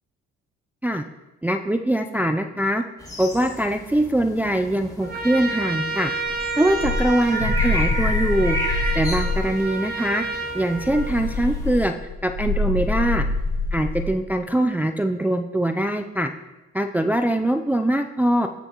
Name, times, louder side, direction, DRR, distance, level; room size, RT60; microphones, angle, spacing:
voice 1, 1.4-2.8 3.2-6.1 6.6-10.2 10.5-11.9 12.2-13.3 13.7-16.3 16.7-18.5, right 1 dB, 5° right, 6 dB, 0.4 m, -22 dB
sound 1, 3.0-11.9, left 2 dB, 10° left, 2.5 m, -34 dB
Trumpet, 5.0-11.5, right 4 dB, 30° right, 1.5 m, -30 dB
sound 2, 6.4-9.5 10.7-14.2, left 2 dB, 90° right, 3.2 m, -25 dB
19.0 x 6.9 x 3.0 m, 1.1 s
cardioid pair, 90°, 30 cm